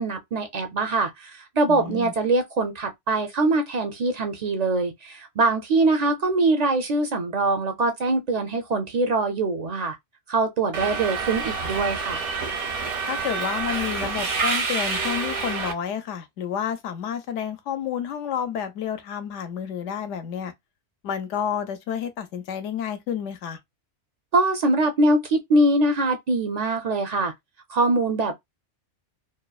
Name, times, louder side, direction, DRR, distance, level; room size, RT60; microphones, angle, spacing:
voice 1, 0.0-10.0 10.3-12.2 24.3-27.3 27.7-28.3, right 2 dB, 55° right, 0.4 m, -23 dB
voice 2, 1.7-2.1 13.0-20.5 21.0-23.6, left 8 dB, 85° left, 0.9 m, -30 dB
Subway metro underground, 10.7-15.7, right 4 dB, 75° right, 1.0 m, -28 dB
2.9 x 2.0 x 2.3 m
omnidirectional pair, 1.2 m